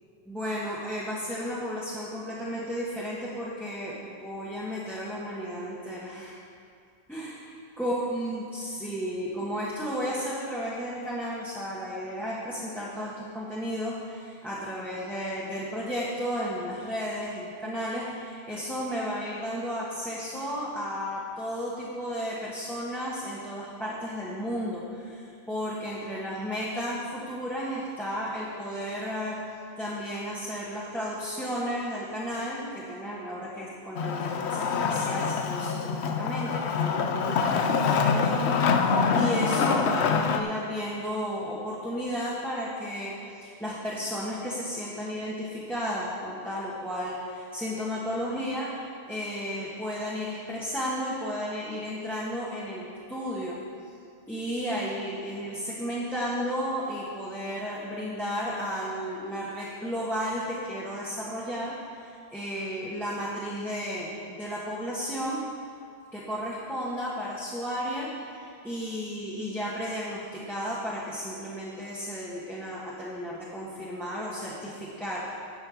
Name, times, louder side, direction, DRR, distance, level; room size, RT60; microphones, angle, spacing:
voice 1, 0.3-6.4 7.1-29.4 29.8-53.6 54.3-61.7 62.0-65.4 66.1-75.2, equal, ahead, -8 dB, 1.3 m, -33 dB
Wood, 34.0-40.4, left 5 dB, 90° left, 0.9 m, -25 dB
10.5 x 5.7 x 7.1 m, 2.3 s
omnidirectional pair, 1.1 m